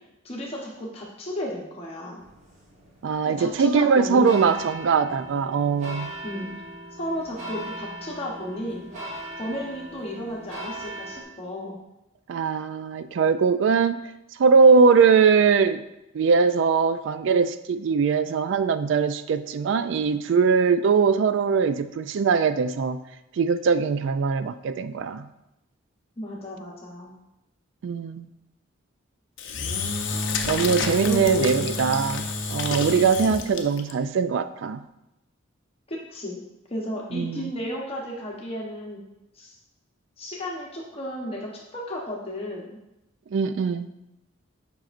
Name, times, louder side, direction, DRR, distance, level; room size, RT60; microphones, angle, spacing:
voice 1, 0.2-2.3 3.2-4.5 6.2-6.5 7.0-8.9 9.4-11.8 26.2-27.1 31.0-31.7 32.0-32.1 33.3-33.4 35.9-36.4 36.7-39.0 39.3-39.6 40.2-42.8, left 1 dB, 30° left, -3 dB, 0.9 m, -33 dB
sound 1, 2.2-11.2, right 1 dB, 35° right, 1.2 m, -39 dB
voice 2, 3.0-6.1 12.3-14.0 14.4-15.8 16.1-23.0 23.3-25.3 27.8-28.3 30.4-34.8 37.1-37.5 43.3-43.9, right 5 dB, 65° right, 12 dB, 0.3 m, -21 dB
Engine / Drill, 29.4-33.9, left 4 dB, 60° left, 0.6 m, -29 dB
7.6 x 5.4 x 2.5 m, 0.90 s
head